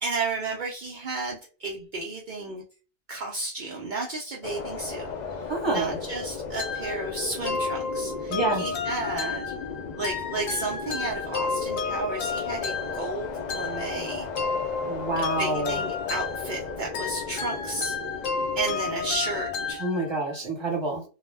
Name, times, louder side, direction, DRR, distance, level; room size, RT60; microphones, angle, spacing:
voice 1, 0.0-2.6 3.1-9.5 9.9-14.3 15.4-18.0 18.5-19.8, right 3 dB, 55° right, -1 dB, 0.5 m, -33 dB
sound 1, 4.4-19.8, left 5 dB, 65° left, 0.4 m, -36 dB
voice 2, 5.5-6.0 8.3-8.6 14.8-15.8 19.8-21.0, right 2 dB, 25° right, -1 dB, 0.9 m, -27 dB
sound 2, 6.6-20.4, left 4 dB, 85° left, 1.0 m, -32 dB
2.3 x 2.1 x 3.2 m, 0.34 s
omnidirectional pair, 1.3 m